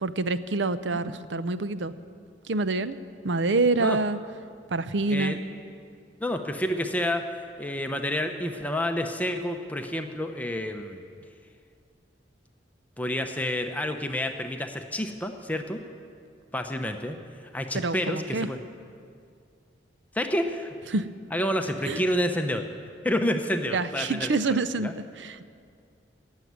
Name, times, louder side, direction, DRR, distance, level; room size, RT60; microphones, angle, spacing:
voice 1, 0.0-1.9 2.4-3.0 3.2-4.2 4.7-5.4 17.7-18.5 20.9-21.1 21.8-22.0 23.7-25.4, right 3 dB, 80° right, 13 dB, 0.6 m, -26 dB
voice 2, 6.2-7.3 7.6-11.0 13.0-15.8 16.5-18.6 20.1-20.7 21.3-22.7 23.0-24.9, left 1 dB, 10° left, 5 dB, 0.7 m, -29 dB
17.5 x 7.4 x 9.4 m, 2.2 s
head